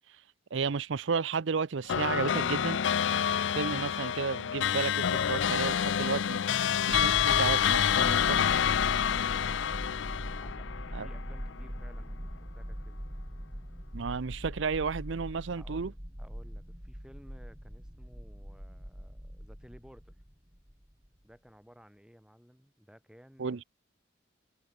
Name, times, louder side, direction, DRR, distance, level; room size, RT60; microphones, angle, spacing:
voice 1, 0.5-2.8 3.5-6.4 6.9-8.4 10.9-11.1 13.9-15.9 23.4-23.6, right 5 dB, 65° right, 0.6 m, -32 dB
sound 1, 1.9-11.5, left 8 dB, 65° left, 0.4 m, -28 dB
sound 2, 6.9-21.1, equal, 20° right, 3.7 m, -41 dB
voice 2, 10.4-13.0 15.5-20.2 21.2-23.7, equal, 5° right, 6.9 m, -56 dB
head